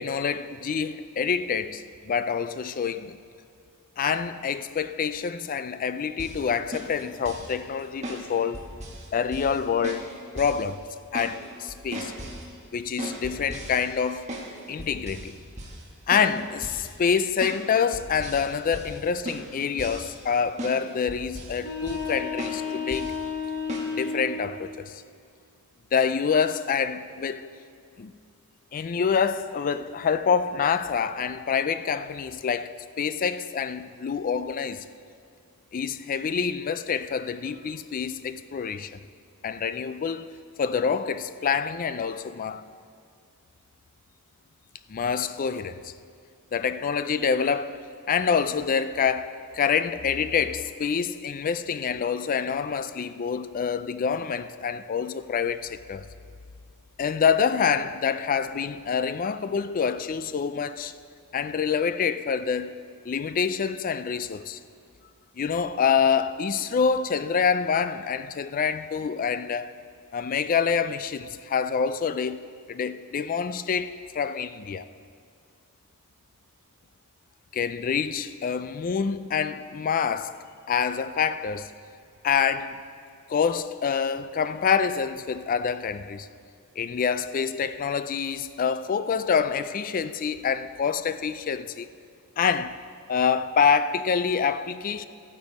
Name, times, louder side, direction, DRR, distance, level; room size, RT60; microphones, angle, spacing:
voice 1, 0.0-3.2 4.0-8.7 9.1-10.1 10.3-10.8 11.1-12.1 12.7-14.3 14.7-15.4 16.1-23.1 24.0-25.0 25.9-27.5 28.0-28.1 28.7-34.9 35.7-39.0 39.4-40.3 40.6-42.7 44.9-45.9 46.5-47.8 48.1-56.1 57.0-60.9 61.3-64.6 65.4-69.7 70.1-74.9 77.5-80.4 80.7-81.7 82.2-82.8 83.3-86.3 86.8-91.9 92.4-92.8 93.1-95.0, left 6 dB, 40° left, 0.3 m, -26 dB
sound 1, 6.2-6.4 6.7-7.5 8.0-8.2 8.5-9.1 9.3-9.6 9.8-10.1 10.4-10.6 10.9-11.3 11.7-12.4 13.0-14.5 14.8-15.3 15.6-15.8 16.1-16.3 16.6-16.9 17.4-17.6 17.9-18.4 18.7-19.0 19.3-20.3 20.6-20.8 21.1-21.6 21.9-22.1 22.4-22.6 22.9-23.1 23.7-23.9, right 1 dB, 30° right, 1.6 m, -37 dB
sound 2, 21.6-24.6, left 5 dB, 75° left, 2.3 m, -32 dB
14.5 x 9.2 x 4.2 m
head